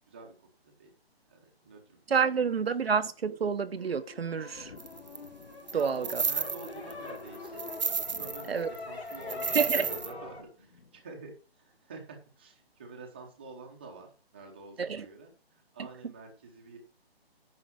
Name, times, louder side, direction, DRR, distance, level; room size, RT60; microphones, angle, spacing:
voice 1, 0.1-0.9 1.3-2.0 2.3-2.9 5.7-7.7 8.1-16.8, right 3 dB, 10° right, 0.9 m, -48 dB
voice 2, 2.1-4.7 5.7-6.2 8.5-8.7 9.5-9.8 14.8-15.0, right 6 dB, 70° right, 0.9 m, -28 dB
sound 1, 3.3-10.4, left 3 dB, 85° left, 4.2 m, -43 dB
sound 2, 4.5-11.3, left 5 dB, 60° left, 2.3 m, -56 dB
sound 3, 4.8-5.2 5.7-6.9 7.3-8.5 8.7-8.8 9.1-10.1, right 5 dB, 45° right, 0.5 m, -32 dB
9.8 x 6.0 x 6.0 m
hypercardioid pair, 175°, 31 cm